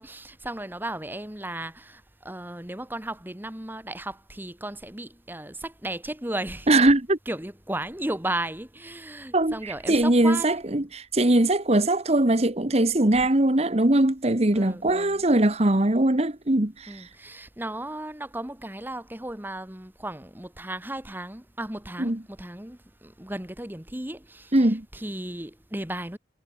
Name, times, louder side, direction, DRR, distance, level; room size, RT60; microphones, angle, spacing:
voice 1, 0.0-6.7 7.3-10.5 14.5-15.2 16.9-26.2, right 1 dB, 10° right, 1.7 m, -35 dB
voice 2, 6.7-7.2 9.3-17.1 22.0-22.2 24.5-24.8, right 1 dB, 35° right, 1.5 m, -21 dB
head